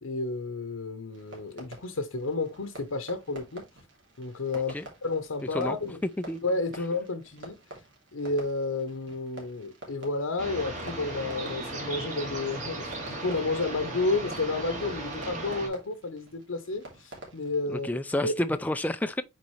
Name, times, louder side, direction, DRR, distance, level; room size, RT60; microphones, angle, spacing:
voice 1, 0.0-3.7 4.2-4.7 5.0-6.0 6.4-7.6 8.1-17.9 18.2-18.3, left 3 dB, 80° left, 0.9 m, -31 dB
Fireworks, 1.1-17.6, right 1 dB, 60° right, 2.8 m, -49 dB
sound 1, 10.4-15.7, right 2 dB, 35° right, 2.5 m, -36 dB
voice 2, 17.7-19.2, left 1 dB, 10° left, 0.3 m, -29 dB
8.5 x 4.1 x 3.2 m
head